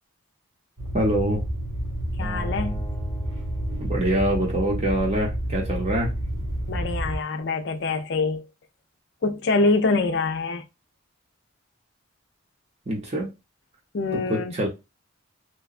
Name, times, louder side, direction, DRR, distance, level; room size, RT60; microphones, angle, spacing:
sound 1, 0.8-7.2, right 1 dB, 80° right, 0.9 m, -29 dB
voice 1, 0.9-1.4 3.8-6.1 12.9-13.3 14.1-14.7, right 1 dB, 30° right, 0.6 m, -25 dB
voice 2, 2.2-2.8 6.7-8.5 9.2-10.6 13.9-14.6, left 3 dB, 55° left, 0.4 m, -25 dB
Acoustic guitar, 2.2-5.5, equal, 10° left, 0.8 m, -42 dB
2.8 x 2.2 x 2.4 m
head